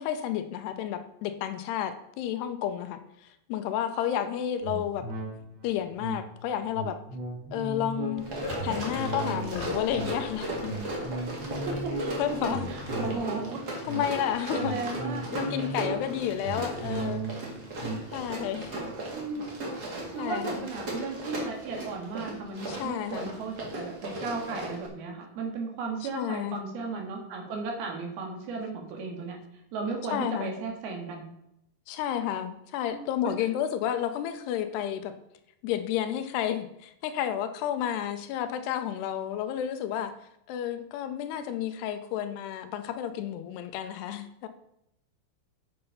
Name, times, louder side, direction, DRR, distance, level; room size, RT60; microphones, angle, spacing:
voice 1, 0.0-5.1 5.6-7.0 7.5-8.3 8.6-10.8 12.2-12.7 13.9-14.7 15.3-17.2 18.1-18.8 20.2-20.7 22.7-23.3 26.0-26.6 30.1-30.5 31.9-35.1 35.6-40.1 40.5-44.5, left 10 dB, 85° left, 10 dB, 2.7 m, -31 dB
sound 1, 4.6-20.4 20.8-20.9, right 2 dB, 85° right, 1.0 m, -38 dB
sound 2, 8.2-13.2, left 5 dB, 70° left, 2.7 m, -44 dB
Run, 8.2-24.9, right 1 dB, 45° right, 1.3 m, -37 dB
voice 2, 11.7-13.6 14.5-15.3 16.8-16.9 19.1-19.5 20.1-29.4 29.7-31.3 32.9-33.0, right 4 dB, 70° right, 2 dB, 3.4 m, -35 dB
8.6 x 6.7 x 5.6 m, 0.80 s
omnidirectional pair, 4.8 m